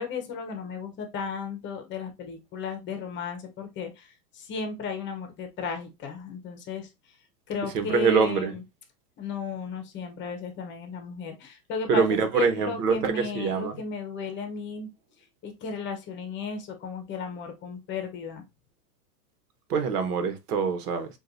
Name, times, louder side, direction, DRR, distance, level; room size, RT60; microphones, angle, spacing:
voice 1, 0.0-7.2 7.5-8.6 9.2-14.9 15.4-18.4, left 5 dB, 25° left, 0.9 m, -34 dB
voice 2, 7.7-8.5 11.9-13.8 19.7-21.1, right 5 dB, 75° right, 1.4 m, -24 dB
7.5 x 2.6 x 2.6 m
supercardioid pair, 140°, 47 cm